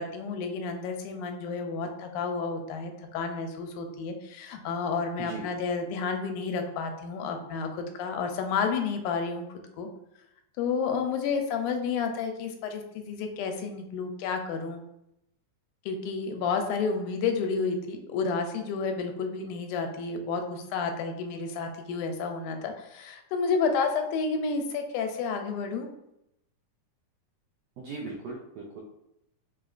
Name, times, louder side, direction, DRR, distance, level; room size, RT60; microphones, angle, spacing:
voice 1, 0.0-9.5 9.8-9.9 10.6-14.8 15.9-25.9, left 5 dB, 85° left, 5 dB, 2.0 m, -30 dB
voice 2, 27.8-28.8, right 3 dB, 80° right, -3 dB, 1.4 m, -38 dB
5.1 x 2.9 x 2.4 m, 0.82 s
omnidirectional pair, 3.5 m